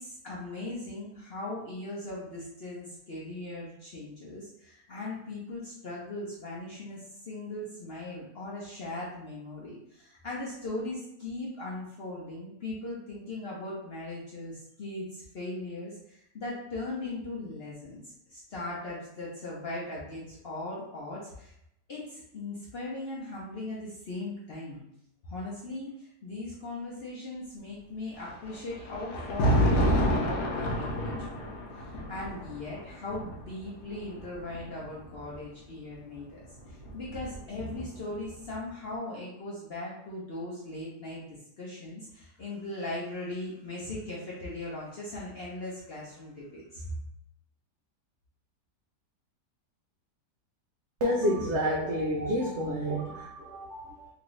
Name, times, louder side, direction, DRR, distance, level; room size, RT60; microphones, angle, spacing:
voice 1, 0.0-21.5 21.9-24.8 25.2-36.4 36.7-41.3 41.6-46.9, left 2 dB, 55° left, -6 dB, 0.7 m, -39 dB
Thunder, 28.2-35.4 36.4-38.2, equal, 75° left, 1.1 m, -30 dB
voice 2, 51.0-54.1, equal, 85° right, -2 dB, 0.6 m, -29 dB
2.9 x 2.6 x 3.1 m, 0.77 s
omnidirectional pair, 1.8 m